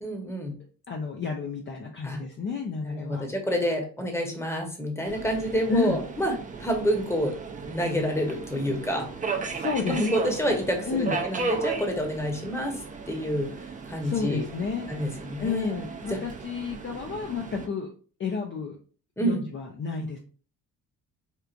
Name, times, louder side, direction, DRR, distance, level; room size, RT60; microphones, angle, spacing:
voice 1, 0.0-0.6 2.0-2.2 2.8-6.3 6.6-9.1 9.8-12.8 13.1-13.5 13.9-14.4 14.9-15.7 16.1-16.2 19.2-19.4, equal, 5° left, 2 dB, 0.9 m, -28 dB
voice 2, 0.9-3.2 5.7-6.0 9.5-10.4 10.9-11.2 14.0-14.9 15.4-17.9 18.2-18.8 19.2-20.2, left 5 dB, 35° left, 1 dB, 0.5 m, -30 dB
Subway metro underground, 5.1-17.7, right 4 dB, 20° right, 0.5 m, -35 dB
4.4 x 2.4 x 2.5 m, 0.41 s
cardioid pair, 110°, 35 cm